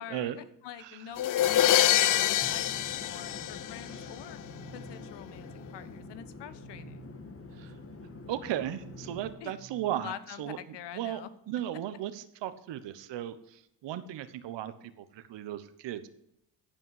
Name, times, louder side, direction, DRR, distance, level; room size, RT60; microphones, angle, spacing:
voice 1, 0.0-4.4 4.7-7.0 9.4-9.5 9.9-11.3, left 10 dB, 65° left, 14 dB, 1.1 m, -45 dB
sound 1, 1.2-4.1, left 13 dB, 45° left, 0.5 m, -25 dB
Conversation / Chatter / Fixed-wing aircraft airplane, 1.4-9.3, left 4 dB, 30° left, 1.6 m, -47 dB
sound 2, 2.4-10.0, right 2 dB, 20° right, 2.2 m, -52 dB
voice 2, 8.3-10.1 10.4-11.2 11.5-14.7 15.1-16.1, right 12 dB, 70° right, 12 dB, 1.2 m, -36 dB
14.5 x 5.6 x 7.4 m, 0.76 s
supercardioid pair, 70°, 45 cm